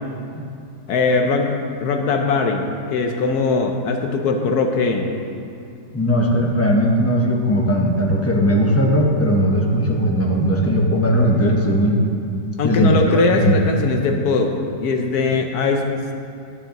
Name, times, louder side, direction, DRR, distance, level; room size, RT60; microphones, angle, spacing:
voice 1, 0.9-5.1 12.6-14.5 14.8-15.8, left 4 dB, 70° left, 4 dB, 1.2 m, -20 dB
voice 2, 5.9-12.0 12.6-13.6, equal, 20° left, -1 dB, 0.4 m, -18 dB
10.5 x 9.9 x 2.9 m, 2.5 s
omnidirectional pair, 1.8 m